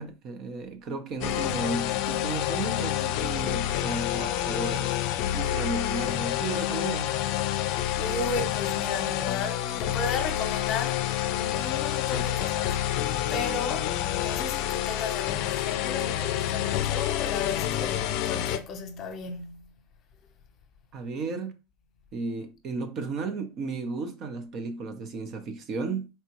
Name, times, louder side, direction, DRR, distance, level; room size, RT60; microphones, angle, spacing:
voice 1, 0.0-4.9 5.3-7.1 20.9-21.6 22.1-26.1, right 3 dB, 45° right, 0.7 m, -34 dB
sound 1, 1.2-18.6, left 12 dB, 60° left, 0.4 m, -28 dB
voice 2, 8.0-13.0 13.3-19.6, left 4 dB, 40° left, 0.8 m, -35 dB
4.2 x 2.3 x 3.0 m
supercardioid pair, 115°, 0 cm